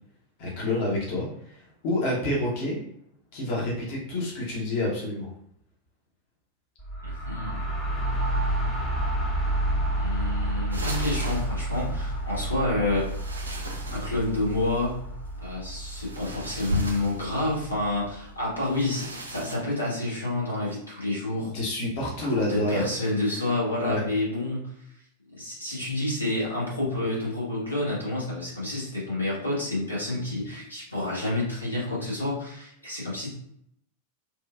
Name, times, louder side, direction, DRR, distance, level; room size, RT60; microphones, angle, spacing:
voice 1, 0.4-2.8 3.3-5.3 21.4-22.8 23.8-24.0, left 1 dB, 45° left, -4 dB, 0.8 m, -28 dB
sound 1, 6.8-18.4, right 1 dB, 15° left, 0.6 m, -30 dB
voice 2, 7.0-7.6 10.0-13.1 13.9-15.0 15.4-21.5 22.3-24.8 25.3-33.3, left 2 dB, 85° left, -5 dB, 1.0 m, -29 dB
sound 2, 10.7-12.0 13.0-14.8 15.8-17.7 18.6-19.6, equal, 75° right, 0.4 m, -36 dB
3.0 x 2.3 x 2.2 m, 0.72 s
figure-of-eight pair, 90°, 0 cm